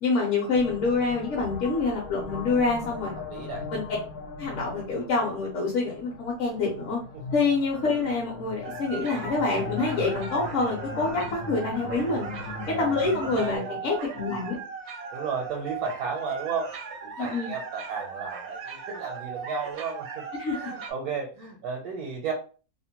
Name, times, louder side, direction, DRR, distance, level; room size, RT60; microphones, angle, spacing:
voice 1, 0.0-3.1 3.7-3.8 4.4-7.0 7.3-12.3 12.7-14.6 17.2-17.5 20.4-20.6, left 3 dB, 60° left, -2 dB, 1.0 m, -26 dB
sound 1, 0.5-13.6, left 4 dB, 90° left, 1.1 m, -39 dB
voice 2, 3.2-3.6 13.2-13.7 15.1-16.7 17.0-20.2 20.5-22.3, right 5 dB, 80° right, 0 dB, 1.1 m, -33 dB
sound 2, 8.6-20.9, right 5 dB, 65° right, 0.7 m, -38 dB
2.7 x 2.1 x 2.8 m, 0.37 s
omnidirectional pair, 1.6 m